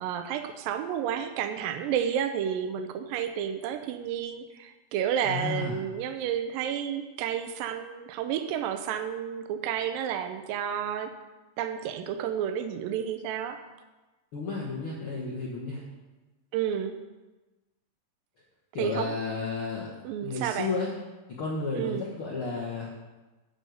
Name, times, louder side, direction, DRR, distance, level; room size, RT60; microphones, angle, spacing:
voice 1, 0.0-11.1 11.6-13.6 16.5-17.0 18.8-19.2 20.0-20.7 21.8-22.1, right 9 dB, 85° right, 8 dB, 2.0 m, -31 dB
voice 2, 5.2-5.8 14.3-15.8 18.7-19.9 20.2-20.9 21.4-22.9, left 3 dB, 85° left, -4 dB, 1.1 m, -32 dB
8.5 x 5.5 x 7.8 m, 1.1 s
omnidirectional pair, 4.8 m